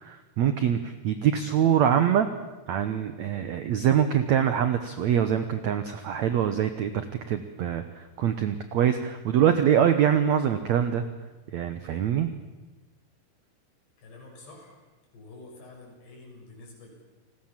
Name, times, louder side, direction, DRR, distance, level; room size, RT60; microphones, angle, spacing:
voice 1, 0.0-2.3 2.7-7.0 7.3-11.0 11.5-12.3, right 9 dB, 85° right, 10 dB, 1.6 m, -24 dB
voice 2, 14.0-14.8 15.1-17.0, left 2 dB, 75° left, -1 dB, 9.0 m, -48 dB
29.5 x 19.5 x 7.4 m, 1.2 s
omnidirectional pair, 4.8 m